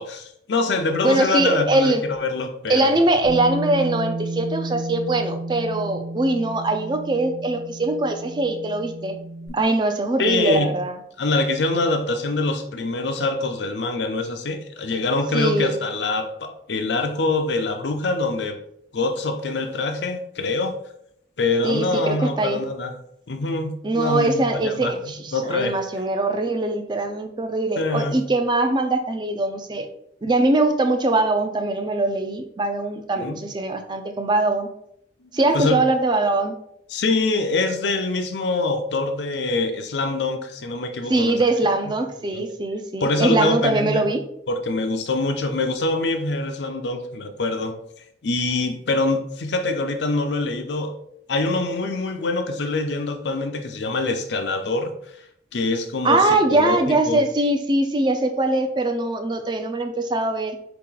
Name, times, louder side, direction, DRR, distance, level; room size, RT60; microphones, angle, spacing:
voice 1, 0.0-3.0 9.5-9.6 10.2-10.7 11.2-18.6 18.9-20.7 21.4-23.0 23.3-24.9 25.3-25.8 27.8-28.2 33.2-33.4 35.2-35.8 36.9-41.4 41.8-41.9 42.3-42.4 43.0-44.1 44.5-47.7 48.2-50.9 51.3-54.9 55.5-57.2, left 3 dB, 75° left, 6 dB, 0.6 m, -24 dB
voice 2, 1.0-2.0 2.7-9.2 9.5-11.0 15.3-15.8 21.6-22.6 23.8-29.9 30.2-34.7 35.3-36.6 41.1-44.2 56.0-60.6, right 2 dB, 25° right, 6 dB, 0.4 m, -22 dB
Bass guitar, 3.2-9.5, right 1 dB, 60° right, 1.0 m, -32 dB
4.2 x 2.9 x 3.8 m, 0.73 s
head